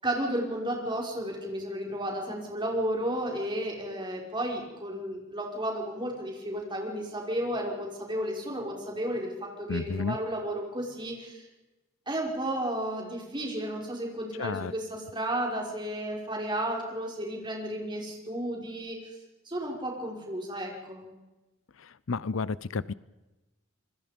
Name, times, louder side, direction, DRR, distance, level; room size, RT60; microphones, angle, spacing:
voice 1, 0.0-11.5 12.1-19.0 19.5-21.1, right 1 dB, 20° right, 0 dB, 5.4 m, -33 dB
voice 2, 9.7-10.2 14.4-14.7 21.8-22.9, left 4 dB, 75° left, 20 dB, 0.6 m, -31 dB
27.0 x 22.0 x 5.3 m, 1.1 s
head